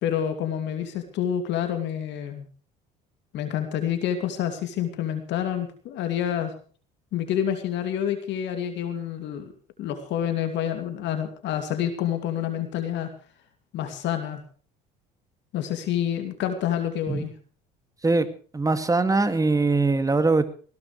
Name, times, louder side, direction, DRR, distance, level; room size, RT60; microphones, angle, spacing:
voice 1, 0.0-2.5 3.3-6.5 7.1-9.5 9.8-13.1 13.7-14.4 15.5-17.3, left 9 dB, 60° left, 7 dB, 2.6 m, -28 dB
voice 2, 18.5-20.5, right 3 dB, 15° right, 10 dB, 2.3 m, -21 dB
20.0 x 17.0 x 3.3 m, 0.40 s
hypercardioid pair, 70°, 20 cm